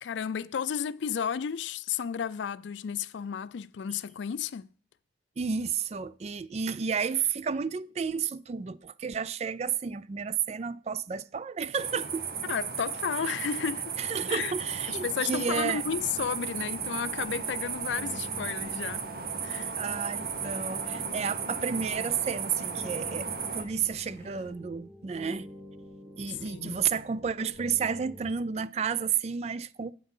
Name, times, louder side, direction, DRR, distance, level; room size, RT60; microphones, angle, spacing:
voice 1, 0.0-4.7 12.5-14.0 14.3-14.5 14.9-19.1 19.4-19.7 26.3-26.8, left 7 dB, 90° left, 0.4 m, -33 dB
voice 2, 5.4-12.3 14.0-15.8 19.8-25.5 26.2-29.9, right 6 dB, 35° right, 0.3 m, -31 dB
sound 1, 11.8-23.6, right 6 dB, 55° right, 0.8 m, -35 dB
sound 2, 14.5-24.5, left 1 dB, 55° left, 1.4 m, -53 dB
sound 3, 16.5-28.3, left 1 dB, 20° right, 2.4 m, -49 dB
8.3 x 5.8 x 5.5 m
head